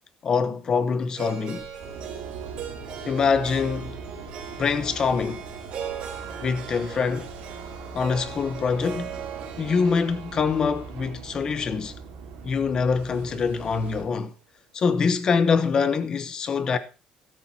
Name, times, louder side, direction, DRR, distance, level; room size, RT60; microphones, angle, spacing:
voice 1, 0.2-1.7 3.0-4.0 4.6-5.4 6.4-7.3 7.9-9.1 9.6-12.0 12.4-14.3 14.7-16.8, left 5 dB, 30° left, 0.9 m, -24 dB
Harp, 1.2-13.3, right 8 dB, 45° right, 3.9 m, -40 dB
sound 1, 1.5-9.3, left 4 dB, 70° left, 2.8 m, -50 dB
sound 2, 1.8-14.0, right 5 dB, 80° right, 3.6 m, -41 dB
13.5 x 13.0 x 2.8 m
cardioid pair, 170°, 2 cm